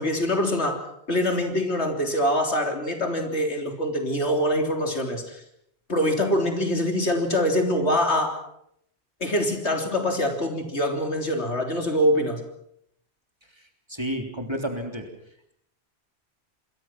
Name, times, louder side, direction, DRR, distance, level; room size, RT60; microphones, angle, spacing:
voice 1, 0.0-5.4 5.9-8.4 9.2-12.4, equal, 80° left, 4 dB, 3.8 m, -24 dB
voice 2, 13.9-15.1, equal, 25° right, 4 dB, 3.4 m, -30 dB
27.5 x 21.5 x 6.1 m, 0.73 s
omnidirectional pair, 1.1 m